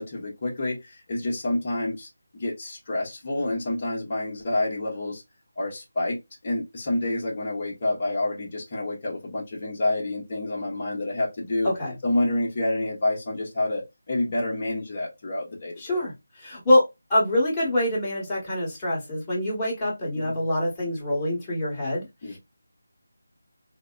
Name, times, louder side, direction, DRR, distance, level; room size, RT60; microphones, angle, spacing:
voice 1, 0.0-5.2 5.6-6.2 6.4-11.7 12.0-16.0 20.1-20.4 22.2-22.4, left 2 dB, 30° left, 0.9 m, -28 dB
voice 2, 11.6-12.0 15.8-22.4, left 1 dB, 15° left, 1.4 m, -25 dB
4.0 x 2.1 x 2.3 m
figure-of-eight pair, 170°, 0 cm